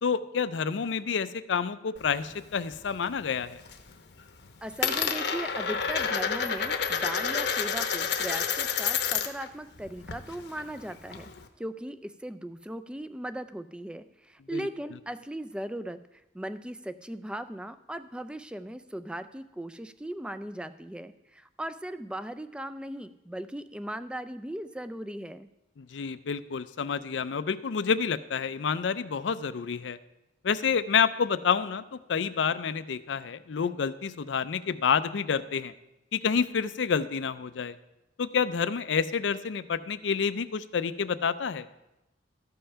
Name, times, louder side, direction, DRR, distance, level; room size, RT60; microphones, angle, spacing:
voice 1, 0.0-3.6 14.5-14.7 25.8-30.0 30.4-35.7 36.1-37.8 38.2-41.7, left 6 dB, 85° left, 15 dB, 0.5 m, -28 dB
Coin (dropping), 2.0-3.1 3.4-3.9 4.2-9.5 9.8-11.5, left 6 dB, 70° left, 0.9 m, -30 dB
voice 2, 4.6-11.3 11.6-16.0 16.3-25.5, right 1 dB, 5° right, 11 dB, 0.3 m, -38 dB
13.5 x 5.5 x 5.6 m, 0.95 s
head